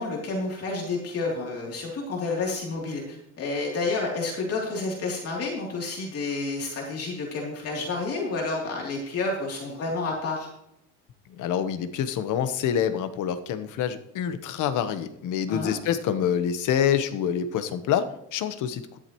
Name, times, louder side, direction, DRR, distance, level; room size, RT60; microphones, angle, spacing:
voice 1, 0.0-10.5 15.5-15.8, left 3 dB, 50° left, -2 dB, 3.1 m, -30 dB
voice 2, 11.3-19.0, left 8 dB, 70° left, 11 dB, 1.1 m, -26 dB
13.5 x 11.5 x 3.1 m, 0.81 s
cardioid pair, 155°, 31 cm